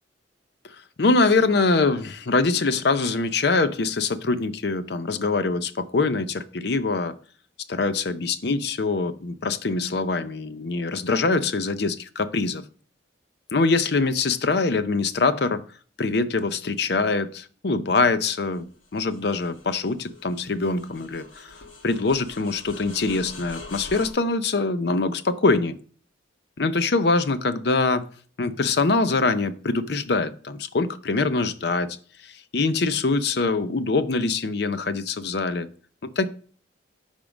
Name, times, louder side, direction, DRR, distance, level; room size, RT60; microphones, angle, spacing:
voice 1, 0.6-7.1 7.7-12.6 13.5-15.6 16.0-21.5 21.8-25.8 26.6-28.1 28.4-32.0 32.2-35.7 36.0-36.3, left 3 dB, 55° left, 12 dB, 0.6 m, -24 dB
sound 1, 18.4-24.1, left 2 dB, 85° left, 1.6 m, -44 dB
10.0 x 3.7 x 4.8 m, 0.43 s
head